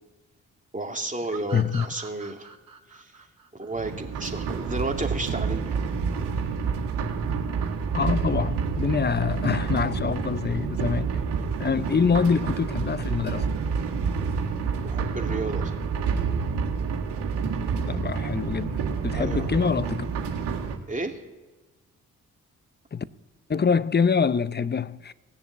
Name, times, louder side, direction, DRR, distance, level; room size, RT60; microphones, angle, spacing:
voice 1, 0.7-2.5 2.9-3.1 3.5-5.8 14.8-15.7 19.1-19.5 20.9-21.2, right 2 dB, 20° right, 2.6 m, -32 dB
sound 1, 1.3-4.7, right 6 dB, 55° right, 1.7 m, -44 dB
voice 2, 1.5-1.9 7.9-11.1 11.6-13.5 17.8-20.1 22.9-23.0 23.5-25.1, left 6 dB, 25° left, 0.7 m, -25 dB
sound 2, 3.7-20.8, right 5 dB, 75° right, 1.9 m, -28 dB
17.5 x 6.9 x 8.6 m
hypercardioid pair, 40°, 40 cm